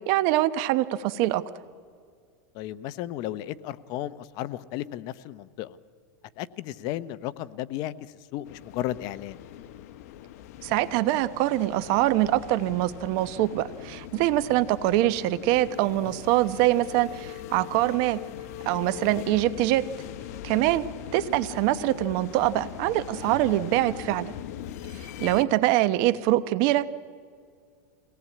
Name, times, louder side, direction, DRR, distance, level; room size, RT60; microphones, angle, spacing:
voice 1, 0.1-1.4 10.6-18.2 18.6-19.9 20.4-24.3 24.9-26.9, right 15 dB, 55° right, 15 dB, 1.0 m, -24 dB
voice 2, 2.5-5.8 6.4-7.9 8.3-9.4 20.5-20.8, left 13 dB, 50° left, 16 dB, 0.8 m, -34 dB
sound 1, 8.5-25.4, left 11 dB, 70° left, 1.0 m, -41 dB
24.0 x 18.5 x 8.5 m, 2.1 s
supercardioid pair, 140°, 9 cm